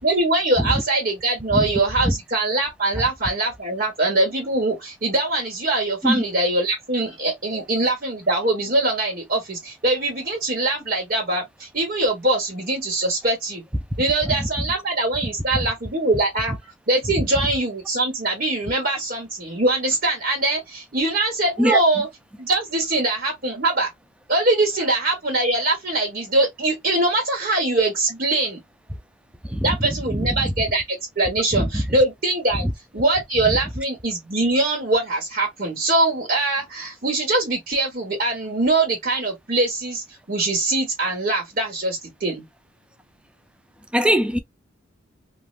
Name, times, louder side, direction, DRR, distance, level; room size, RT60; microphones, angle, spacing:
voice 1, 0.0-13.6 14.0-16.6 16.9-22.1 22.4-23.9 24.3-28.6 29.6-32.7 32.9-42.4, right 2 dB, 50° right, 1.3 m, -22 dB
voice 2, 43.9-44.4, equal, 5° right, 0.4 m, -20 dB
3.3 x 2.4 x 2.3 m
head